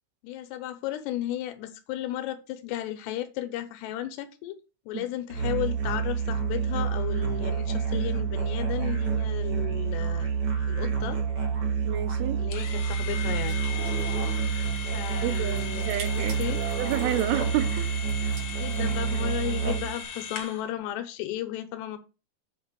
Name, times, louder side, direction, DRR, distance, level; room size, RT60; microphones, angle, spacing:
voice 1, 0.2-4.6 4.9-10.3 10.7-11.2 12.2-13.6 14.9-16.6 18.6-22.0, left 13 dB, 85° left, 3.1 m, -34 dB
Musical instrument, 5.3-20.0, right 6 dB, 35° right, 2.0 m, -28 dB
voice 2, 11.9-12.4 15.2-16.4 16.8-18.0, right 12 dB, 80° right, 2.6 m, -30 dB
sound 1, 12.5-20.7, left 7 dB, 55° left, 1.7 m, -38 dB
sound 2, 13.5-20.1, right 4 dB, 55° right, 4.0 m, -48 dB
8.0 x 3.9 x 6.7 m
omnidirectional pair, 4.8 m